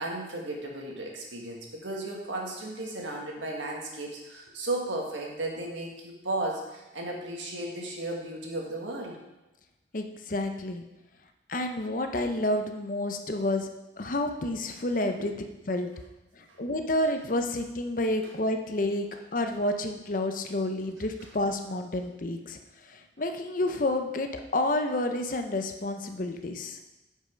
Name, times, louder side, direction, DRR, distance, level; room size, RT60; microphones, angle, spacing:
voice 1, 0.0-9.2 15.2-15.3 16.5-16.6 18.2-18.3, right 2 dB, 90° right, 0 dB, 1.8 m, -35 dB
voice 2, 9.9-10.8 11.5-13.7 14.0-15.3 15.7-15.9 16.4-19.1 19.3-22.6 22.9-26.8, left 1 dB, 45° left, 6 dB, 0.7 m, -29 dB
8.5 x 5.5 x 5.1 m, 1.0 s
head